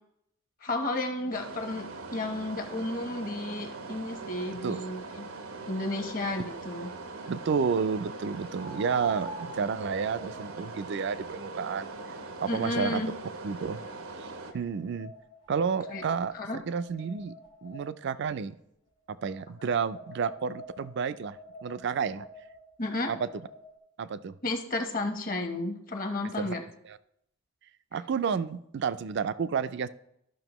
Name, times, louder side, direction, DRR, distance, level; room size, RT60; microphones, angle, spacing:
voice 1, 0.6-5.2 5.7-6.9 12.5-13.1 15.9-16.0 16.3-16.6 22.8-23.1 24.4-26.6, left 2 dB, 40° left, 5 dB, 1.0 m, -32 dB
sound 1, 1.3-14.5, right 3 dB, 90° right, 0.8 m, -41 dB
voice 2, 4.5-4.8 7.3-11.9 12.4-13.0 13.4-13.8 14.2-15.1 15.5-17.3 17.6-18.6 19.1-21.4 21.6-22.3 23.1-23.3 24.0-24.3 26.4-26.5 26.8-27.0 27.9-29.9, right 6 dB, 55° right, 15 dB, 0.4 m, -31 dB
sound 2, 8.5-13.7 14.5-18.2 19.2-23.8, equal, 60° left, 1.5 m, -48 dB
12.5 x 6.0 x 3.0 m, 0.77 s
head